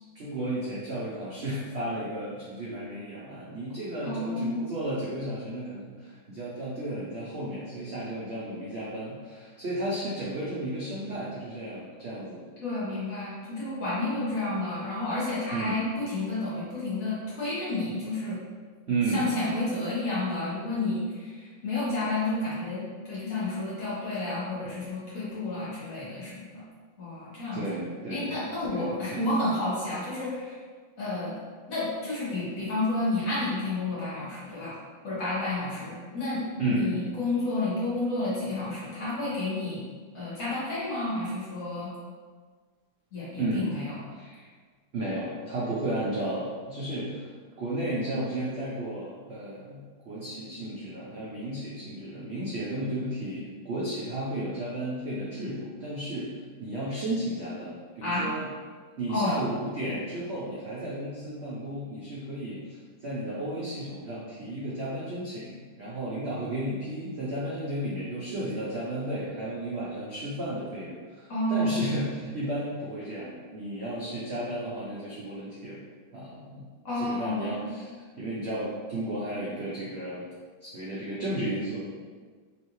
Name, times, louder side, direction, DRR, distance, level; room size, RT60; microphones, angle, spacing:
voice 1, 0.1-12.4 14.1-14.2 15.5-15.8 18.9-19.3 27.5-28.3 28.7-29.2 36.6-36.9 43.4-43.8 44.1-44.5 44.9-47.3 47.6-58.5 59.0-75.8 76.1-76.6 77.0-80.3 80.6-81.8, right 1 dB, 75° right, -7 dB, 0.6 m, -33 dB
voice 2, 4.0-4.7 12.6-18.4 19.1-26.6 27.0-27.8 28.1-30.6 31.0-31.3 31.7-34.7 35.0-36.4 36.7-39.8 40.1-41.9 43.1-43.9 58.0-58.3 59.1-59.4 71.3-71.8 76.8-77.7, left 2 dB, 50° left, -9 dB, 1.6 m, -30 dB
3.7 x 3.2 x 3.0 m, 1.5 s
omnidirectional pair, 2.1 m